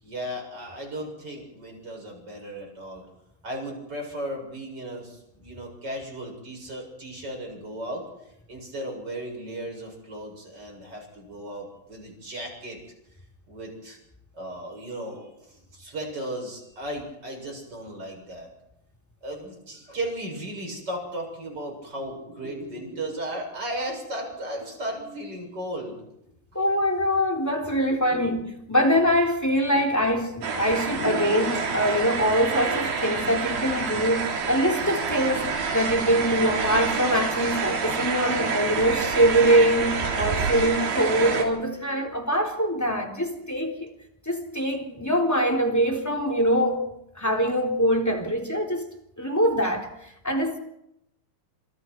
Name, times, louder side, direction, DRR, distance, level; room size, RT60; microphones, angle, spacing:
voice 1, 0.0-3.0 3.4-8.1 8.5-12.8 13.5-14.0 14.3-18.5 19.2-26.0 27.4-27.5 28.1-28.3 29.7-29.9 30.9-31.6, right 1 dB, 25° right, 7.5 m, -35 dB
voice 2, 26.5-28.4 28.7-43.9 44.2-46.8 47.1-48.9 49.2-50.6, equal, 5° left, 2.7 m, -23 dB
sound 1, 30.4-41.4, right 5 dB, 85° right, 5.5 m, -28 dB
28.5 x 27.5 x 4.6 m
omnidirectional pair, 4.6 m